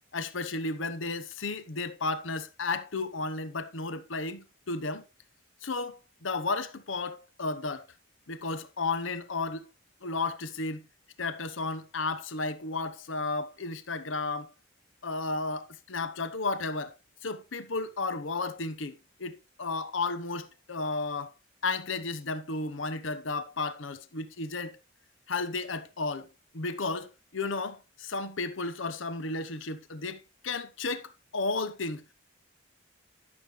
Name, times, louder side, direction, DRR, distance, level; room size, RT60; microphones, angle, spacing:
voice 1, 0.1-5.0 5.6-7.9 8.3-9.7 10.0-10.9 11.2-14.5 15.0-16.9 17.2-21.3 21.6-24.8 25.3-26.3 26.5-32.0, left 3 dB, 80° left, 1.0 m, -33 dB
12.0 x 7.3 x 3.2 m
head